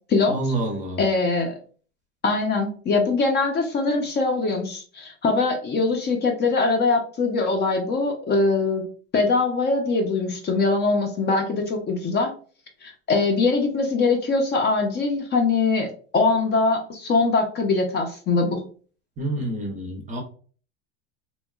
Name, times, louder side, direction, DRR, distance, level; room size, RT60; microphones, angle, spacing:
voice 1, 0.3-1.0 19.2-20.2, right 2 dB, 20° right, 2 dB, 0.6 m, -28 dB
voice 2, 1.0-1.5 2.2-8.8 9.1-12.3 12.8-18.6, left 3 dB, 30° left, 3 dB, 0.5 m, -22 dB
2.8 x 2.2 x 2.2 m, 0.42 s
supercardioid pair, 105°, 35 cm